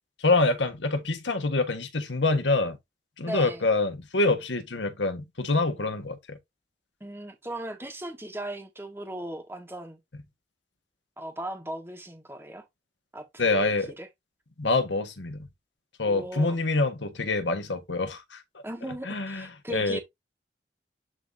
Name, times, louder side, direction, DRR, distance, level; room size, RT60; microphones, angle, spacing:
voice 1, 0.2-2.8 3.2-6.4 13.4-13.9 14.6-15.5 16.0-18.4 19.0-20.0, left 3 dB, 90° left, 1.4 m, -26 dB
voice 2, 3.2-3.7 7.0-10.0 11.2-12.6 13.1-14.1 16.0-16.5 18.6-20.0, right 1 dB, 15° right, 1.4 m, -37 dB
10.5 x 3.9 x 2.7 m
head